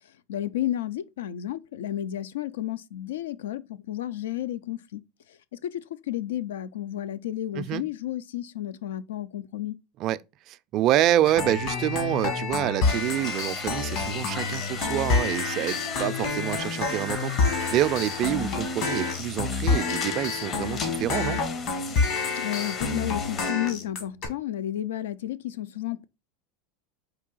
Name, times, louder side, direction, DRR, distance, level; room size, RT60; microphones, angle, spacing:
voice 1, 0.3-5.0 5.6-9.8 22.4-26.1, left 12 dB, 85° left, 0.4 m, -32 dB
voice 2, 10.5-17.3 17.7-21.4, right 13 dB, 50° right, 0.3 m, -27 dB
sound 1, 11.2-24.3, left 4 dB, 55° left, 1.4 m, -28 dB
sound 2, 12.8-23.5, left 4 dB, 30° left, 0.6 m, -39 dB
4.6 x 2.8 x 3.8 m
supercardioid pair, 115°, 0 cm